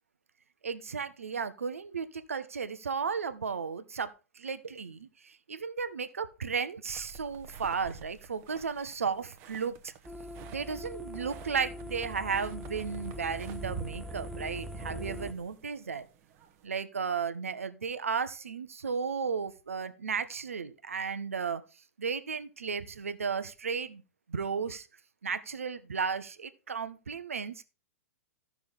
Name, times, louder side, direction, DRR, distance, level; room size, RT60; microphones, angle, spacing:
voice 1, 0.6-4.1 4.3-9.9 10.5-16.1 16.6-21.6 22.0-24.0 24.3-24.9 25.2-27.6, right 5 dB, 70° right, 12 dB, 1.0 m, -34 dB
sound 1, 6.9-16.6, right 7 dB, 35° right, 1.1 m, -49 dB
sound 2, 10.0-15.3, left 1 dB, ahead, 0.6 m, -42 dB
15.0 x 6.1 x 3.5 m, 0.30 s
figure-of-eight pair, 105°, 8 cm